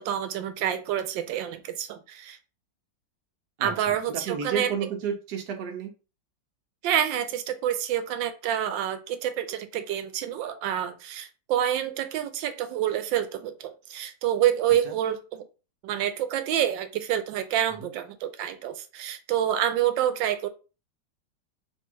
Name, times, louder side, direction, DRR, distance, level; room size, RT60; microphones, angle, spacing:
voice 1, 0.0-2.4 3.6-4.7 6.8-15.4 15.8-20.5, right 10 dB, 85° right, 10 dB, 1.3 m, -27 dB
voice 2, 3.6-5.9 14.8-15.0 17.8-17.9, right 7 dB, 65° right, 5 dB, 1.3 m, -32 dB
3.4 x 2.7 x 4.4 m, 0.32 s
omnidirectional pair, 2.0 m